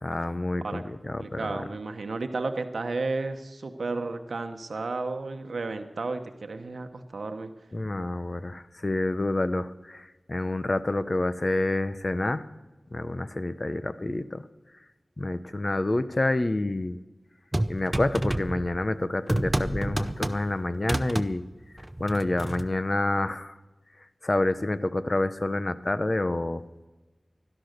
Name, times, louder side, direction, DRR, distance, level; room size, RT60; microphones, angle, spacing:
voice 1, 0.0-1.6 7.7-12.4 12.9-14.4 15.2-17.0 17.7-21.4 22.0-23.6 24.2-26.6, left 2 dB, 40° left, 13 dB, 0.8 m, -28 dB
voice 2, 0.6-7.5, right 3 dB, 85° right, 7 dB, 0.9 m, -33 dB
sound 1, 17.5-18.9 19.3-20.5 20.8-21.3 21.8-22.7, right 1 dB, 20° right, 0.7 m, -29 dB
16.0 x 12.0 x 6.6 m, 1.1 s
wide cardioid pair, 65°, 0 cm